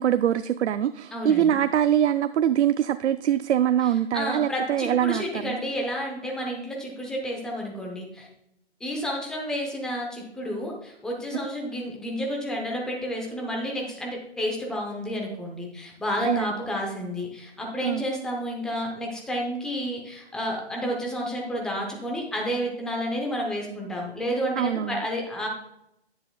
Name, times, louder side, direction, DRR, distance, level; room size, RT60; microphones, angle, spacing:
voice 1, 0.0-5.6 16.2-16.5 17.8-18.0 24.6-25.0, right 10 dB, 80° right, 13 dB, 0.5 m, -23 dB
voice 2, 1.1-1.6 3.8-8.3 8.8-25.5, equal, ahead, -1 dB, 0.7 m, -31 dB
10.0 x 9.7 x 2.3 m, 0.83 s
hypercardioid pair, 155°, 34 cm